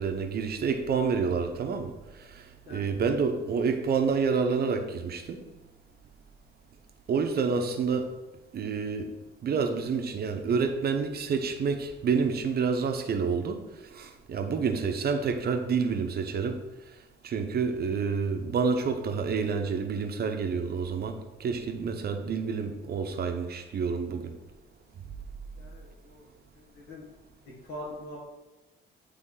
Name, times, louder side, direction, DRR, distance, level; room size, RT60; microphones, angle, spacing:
voice 1, 0.0-5.4 7.1-8.1 8.5-9.1 9.4-13.6 13.9-16.6 17.2-24.3, right 5 dB, 50° right, 6 dB, 0.8 m, -28 dB
voice 2, 25.5-26.3 26.5-27.0 27.4-28.3, left 1 dB, 55° left, -6 dB, 1.6 m, -43 dB
8.0 x 3.3 x 3.8 m, 1.1 s
cardioid pair, 90°, 20 cm